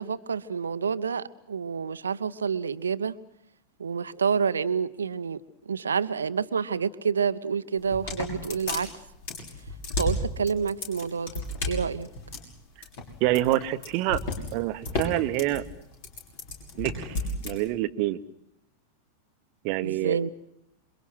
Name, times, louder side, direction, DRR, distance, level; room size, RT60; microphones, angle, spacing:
voice 1, 0.0-3.1 3.8-8.9 10.0-12.1 19.8-20.3, right 6 dB, 70° right, 15 dB, 0.9 m, -28 dB
sound 1, 7.8-17.5, left 2 dB, 50° left, 6.4 m, -33 dB
voice 2, 13.2-14.2 14.5-15.7 16.8-17.2 17.4-18.2 19.6-20.2, right 15 dB, 45° right, 13 dB, 1.1 m, -26 dB
27.5 x 23.5 x 6.2 m, 0.81 s
figure-of-eight pair, 90°, 0 cm